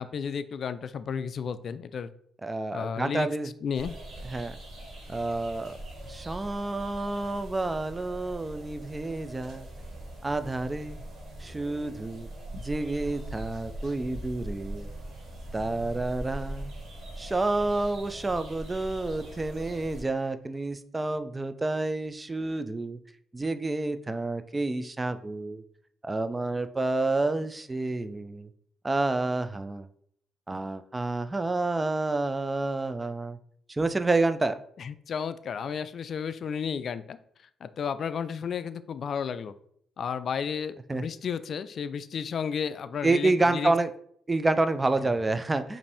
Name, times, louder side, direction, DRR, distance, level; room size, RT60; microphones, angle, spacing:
voice 1, 0.0-2.1 2.7-3.3 3.6-4.0 34.8-37.2 37.6-39.5 40.0-43.7, left 7 dB, 55° left, 13 dB, 0.3 m, -32 dB
voice 2, 2.4-3.5 4.2-4.6 5.1-5.8 6.0-9.7 10.2-11.0 11.4-12.3 12.6-14.9 15.5-16.7 17.2-23.0 23.3-25.6 26.0-28.5 28.8-29.9 30.5-33.4 33.7-34.6 40.9-41.0 43.0-43.9 44.3-45.8, right 2 dB, 20° right, 11 dB, 0.3 m, -29 dB
sound 1, 3.7-20.0, right 1 dB, 70° right, 1.5 m, -41 dB
5.1 x 2.6 x 3.4 m, 0.66 s
cardioid pair, 90°, 0 cm